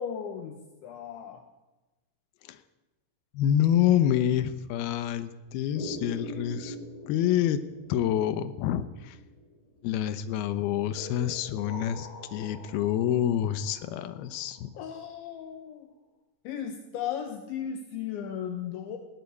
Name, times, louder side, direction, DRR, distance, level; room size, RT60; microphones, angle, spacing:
voice 1, 0.0-1.4 14.8-15.9 16.5-19.0, left 8 dB, 70° left, 5 dB, 3.5 m, -36 dB
voice 2, 3.3-6.8 7.1-7.6 7.9-9.2 9.8-14.7, left 10 dB, 85° left, 12 dB, 2.2 m, -27 dB
sound 1, 5.7-10.0 11.0-14.8, left 1 dB, 40° left, 3.8 m, -43 dB
19.5 x 17.0 x 8.4 m, 1.1 s
omnidirectional pair, 5.8 m